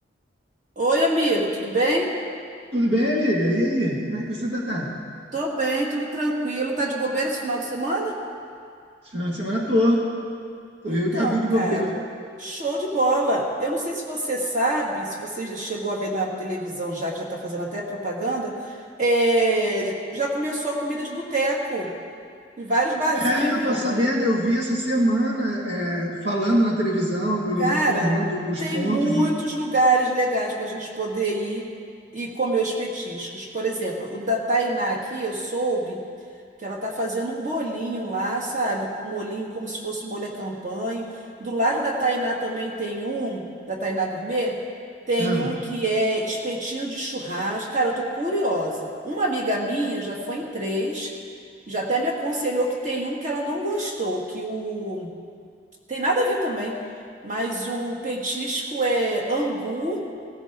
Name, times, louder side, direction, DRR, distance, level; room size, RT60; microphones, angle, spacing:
voice 1, 0.8-2.1 5.3-8.2 10.8-11.9 12.4-21.9 22.6-23.8 27.6-28.1 28.6-31.7 32.1-36.0 36.6-41.1 41.4-44.6 45.1-51.1 51.7-55.1 55.9-56.8 57.2-60.0, right 1 dB, 40° right, -1 dB, 2.0 m, -26 dB
voice 2, 2.7-4.9 9.1-10.0 10.8-11.9 23.1-29.3 45.2-45.5, equal, 70° right, -2 dB, 2.0 m, -23 dB
16.5 x 15.0 x 3.7 m, 2.2 s
head